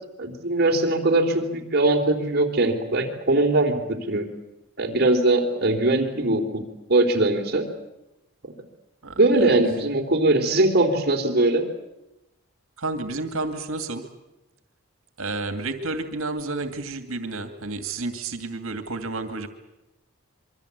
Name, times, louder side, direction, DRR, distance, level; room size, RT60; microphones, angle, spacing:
voice 1, 0.2-4.3 4.8-6.6 6.9-7.7 8.4-8.5 9.1-11.6, right 2 dB, 45° right, 3 dB, 3.4 m, -21 dB
voice 2, 9.0-9.5 12.8-14.1 15.2-19.5, right 3 dB, 70° right, 8 dB, 2.4 m, -31 dB
26.5 x 24.0 x 8.3 m, 0.92 s
head